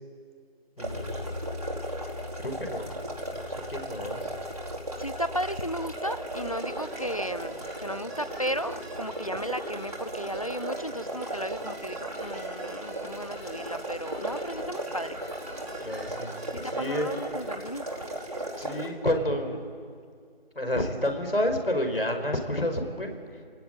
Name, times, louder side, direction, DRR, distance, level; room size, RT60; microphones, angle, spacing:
voice 1, 0.8-1.4 2.4-2.9 3.3-4.3 15.8-16.4 16.7-17.1 18.6-19.6 20.5-23.2, left 1 dB, 70° left, 5 dB, 5.3 m, -30 dB
sound 1, 0.8-18.9, right 1 dB, 40° right, 4.7 m, -36 dB
voice 2, 5.0-15.2 16.5-17.9, equal, 35° left, 16 dB, 0.7 m, -35 dB
sound 2, 6.4-17.3, right 1 dB, 85° right, 3.7 m, -47 dB
28.0 x 18.5 x 9.3 m, 2.1 s
figure-of-eight pair, 175°, 30 cm